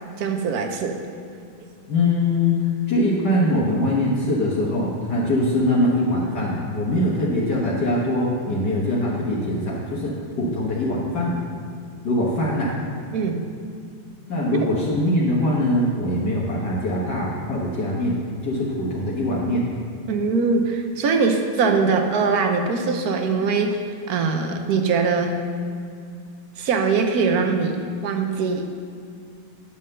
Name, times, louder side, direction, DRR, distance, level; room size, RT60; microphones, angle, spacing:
voice 1, 0.2-1.0 13.1-13.4 14.6-14.7 20.1-23.8 24.1-25.3 26.6-28.7, right 4 dB, 60° right, 4 dB, 1.1 m, -22 dB
voice 2, 1.9-2.6 2.9-11.4 12.0-12.7 14.3-18.2 18.4-19.7, left 1 dB, 55° left, -5 dB, 1.8 m, -22 dB
10.0 x 5.6 x 6.6 m, 2.3 s
omnidirectional pair, 2.2 m